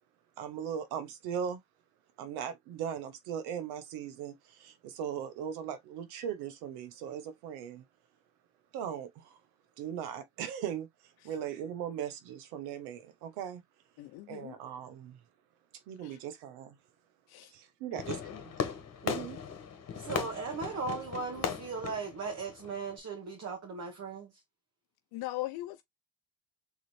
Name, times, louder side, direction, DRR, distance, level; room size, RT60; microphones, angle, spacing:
voice 1, 0.4-1.6 2.2-7.8 8.7-9.4 9.8-10.9 11.2-13.6 14.3-15.2 15.9-16.8 17.5-18.2 19.0-19.4, right 9 dB, 85° right, 1.2 m, -38 dB
voice 2, 14.0-14.5 16.0-16.2 17.3-17.5 18.2-18.4 25.1-25.8, left 18 dB, 70° left, 0.7 m, -39 dB
Fireworks, 18.0-23.0, left 6 dB, 40° left, 1.5 m, -38 dB
voice 3, 19.9-24.4, right 4 dB, 40° right, 1.6 m, -37 dB
4.0 x 3.8 x 3.2 m
supercardioid pair, 90°, 38 cm